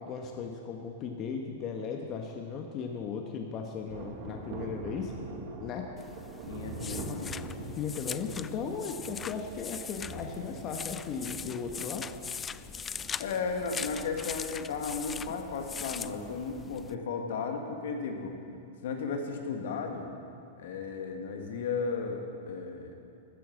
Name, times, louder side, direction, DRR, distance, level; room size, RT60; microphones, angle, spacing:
voice 1, 0.0-5.1 5.6-5.9 7.0-7.2 7.7-12.1 15.3-15.4, left 6 dB, 35° left, 3 dB, 1.2 m, -37 dB
Thunder, 3.9-15.9 16.1-16.2, right 3 dB, 50° right, 1.9 m, -44 dB
sound 1, 6.0-16.9, left 6 dB, 20° left, 0.3 m, -41 dB
voice 2, 6.5-7.3 13.2-18.3 18.8-20.1 20.6-22.9, left 5 dB, 70° left, 4 dB, 1.7 m, -34 dB
14.0 x 9.2 x 7.4 m, 2.5 s
hypercardioid pair, 110°, 0 cm